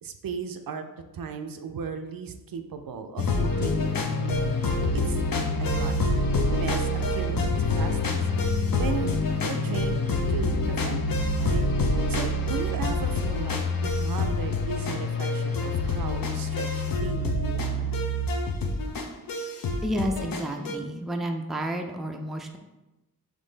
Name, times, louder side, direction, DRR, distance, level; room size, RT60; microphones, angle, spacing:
voice 1, 0.0-0.8 1.1-4.2 4.9-6.0 6.5-8.3 8.8-9.2 9.4-11.6 12.1-17.9, right 5 dB, 65° right, 6 dB, 0.5 m, -36 dB
sound 1, 3.2-20.7, left 2 dB, 65° left, 0.6 m, -26 dB
voice 2, 19.8-22.6, equal, ahead, 3 dB, 0.4 m, -30 dB
3.7 x 3.1 x 3.9 m, 1.0 s
cardioid pair, 60°, 37 cm